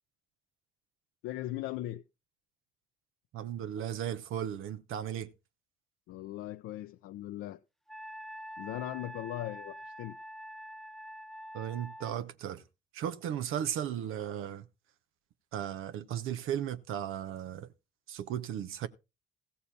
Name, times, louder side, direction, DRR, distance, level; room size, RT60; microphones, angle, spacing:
voice 1, 1.2-2.0 6.1-7.6 8.6-10.2, left 14 dB, 80° left, 0.5 m, -39 dB
voice 2, 3.3-5.3 11.5-12.6 12.9-14.7 15.5-17.7 18.1-18.9, right 10 dB, 80° right, 0.8 m, -36 dB
Wind instrument woodwind instrument, 7.9-12.2, equal, ahead, 0.5 m, -45 dB
15.0 x 6.9 x 4.2 m
supercardioid pair, 55°, 21 cm